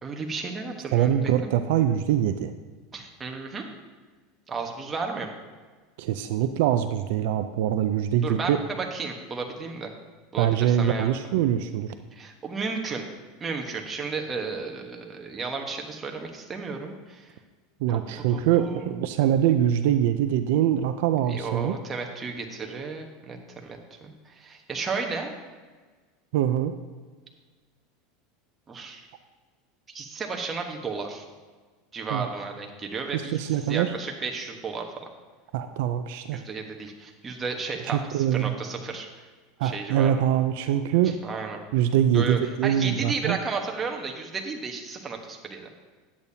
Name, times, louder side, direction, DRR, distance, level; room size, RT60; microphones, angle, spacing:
voice 1, 0.0-1.5 2.9-3.6 4.5-5.3 8.2-9.9 10.3-11.1 12.1-13.0 13.4-17.3 17.9-18.9 21.3-25.3 28.7-29.1 29.9-31.2 31.9-33.4 33.7-35.1 36.3-39.2 39.6-40.2 41.0-41.6 42.1-45.7, right 4 dB, 20° right, 2 dB, 1.1 m, -33 dB
voice 2, 0.9-2.5 6.0-8.6 10.4-11.9 17.8-21.8 26.3-26.7 32.1-32.3 33.1-34.0 35.5-36.4 37.9-38.5 39.6-41.2 41.7-43.4, right 10 dB, 70° right, 9 dB, 0.4 m, -23 dB
10.5 x 8.4 x 2.8 m, 1.4 s
supercardioid pair, 130°, 0 cm